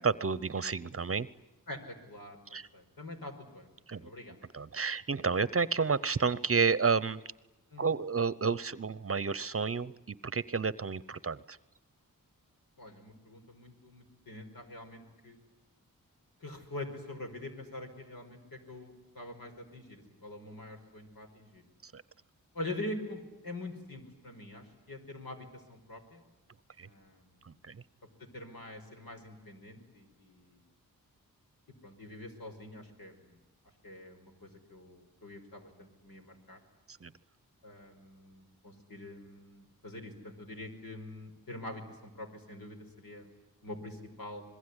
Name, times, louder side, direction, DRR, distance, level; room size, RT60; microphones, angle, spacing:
voice 1, 0.0-1.3 2.5-2.7 3.9-4.1 4.5-7.2 7.8-11.6 21.8-22.0 26.8-26.9 27.4-27.8 36.9-37.1, right 5 dB, 40° right, 18 dB, 0.8 m, -31 dB
voice 2, 1.7-3.7 3.9-4.4 7.7-7.9 12.8-15.4 16.4-21.6 22.5-26.2 26.8-27.6 28.3-30.6 31.8-33.4 33.8-36.6 37.6-43.3 43.6-44.4, left 1 dB, 75° left, 3 dB, 5.4 m, -45 dB
26.0 x 21.5 x 9.8 m, 1.0 s
cardioid pair, 60°, 36 cm